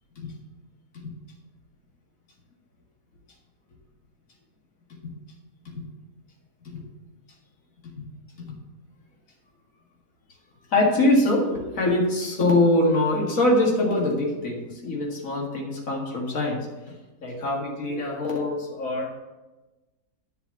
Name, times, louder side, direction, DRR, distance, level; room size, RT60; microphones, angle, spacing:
voice 1, 10.7-16.6 17.2-19.1, left 1 dB, 55° left, -1 dB, 2.3 m, -23 dB
11.0 x 5.7 x 6.8 m, 1.1 s
omnidirectional pair, 1.7 m